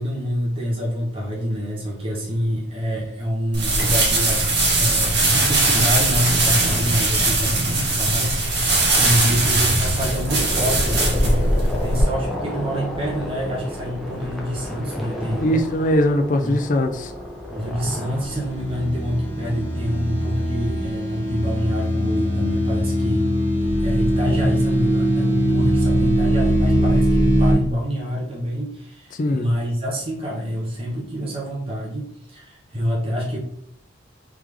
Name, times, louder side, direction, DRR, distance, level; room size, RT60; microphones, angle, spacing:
voice 1, 0.0-15.7 16.4-16.5 17.5-23.3 23.6-33.4, equal, 30° right, -5 dB, 1.0 m, -27 dB
sound 1, 3.5-12.0, right 2 dB, 60° right, 1.5 m, -20 dB
sound 2, 10.2-20.2 21.9-22.0 22.2-22.3 23.6-24.1, equal, ahead, 0.6 m, -32 dB
voice 2, 15.4-17.1 29.2-29.5, left 1 dB, 40° left, 6 dB, 0.4 m, -20 dB
sound 3, 17.7-27.5, equal, 65° left, 1.6 m, -21 dB
3.7 x 3.3 x 3.3 m, 0.70 s
head